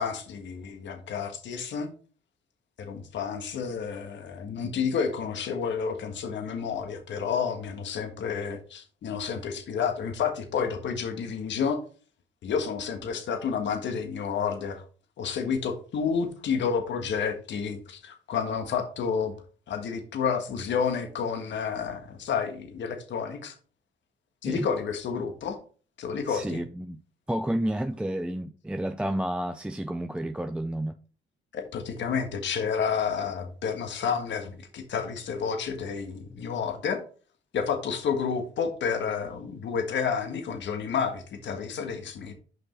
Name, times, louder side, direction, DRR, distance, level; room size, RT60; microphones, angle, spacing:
voice 1, 0.0-1.9 2.8-11.8 12.4-14.8 15.2-19.3 19.7-23.5 24.4-25.6 26.0-26.6 31.5-37.0 37.5-42.3, left 6 dB, 65° left, 1.6 m, -30 dB
voice 2, 26.3-27.0 27.3-31.0, right 1 dB, 5° right, 0.5 m, -30 dB
6.5 x 5.5 x 4.2 m
cardioid pair, 90°, 20 cm